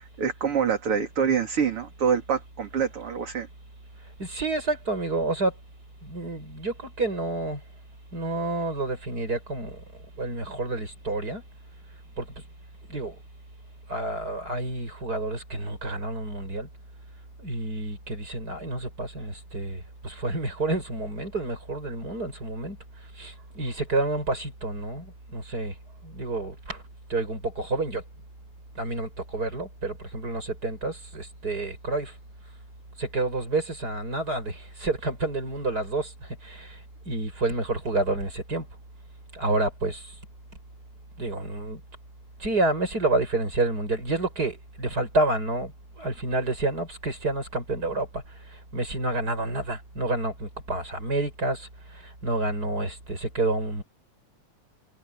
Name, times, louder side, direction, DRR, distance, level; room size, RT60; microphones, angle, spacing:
voice 1, 0.0-3.5, right 7 dB, 45° right, 3.9 m, -26 dB
voice 2, 4.2-5.5 6.0-7.6 8.1-9.8 10.2-11.4 12.2-12.3 12.9-13.2 13.9-16.7 17.4-22.8 23.2-25.7 26.0-26.8 27.1-28.0 28.8-32.1 33.0-36.8 37.1-38.7 39.3-40.1 41.2-41.8 42.4-48.2 48.5-53.8, right 2 dB, 30° right, 7.7 m, -29 dB
omnidirectional pair, 3.4 m